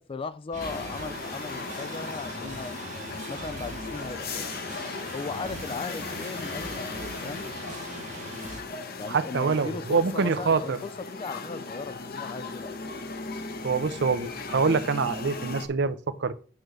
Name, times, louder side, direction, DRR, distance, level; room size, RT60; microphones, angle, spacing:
voice 1, 0.1-2.8 3.3-4.5 5.1-7.5 9.0-12.8, left 4 dB, 30° left, 0.4 m, -37 dB
sound 1, 0.5-8.6, right 3 dB, 40° right, 1.0 m, -41 dB
sound 2, 0.6-15.7, left 4 dB, 50° left, 1.0 m, -37 dB
voice 2, 9.1-10.8 13.6-16.3, right 5 dB, 60° right, 0.6 m, -25 dB
8.7 x 3.1 x 6.2 m
head